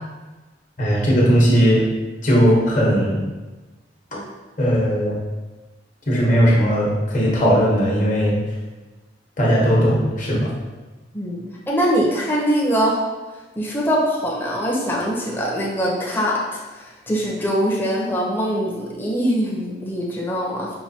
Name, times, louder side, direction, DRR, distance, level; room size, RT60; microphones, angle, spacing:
voice 1, 0.8-1.8 2.2-3.2 4.6-5.1 6.1-8.3 9.4-10.5, equal, 45° left, -4 dB, 1.1 m, -17 dB
voice 2, 11.1-13.0 13.6-20.7, equal, 10° left, -5 dB, 0.7 m, -22 dB
5.7 x 2.7 x 2.8 m, 1.2 s
head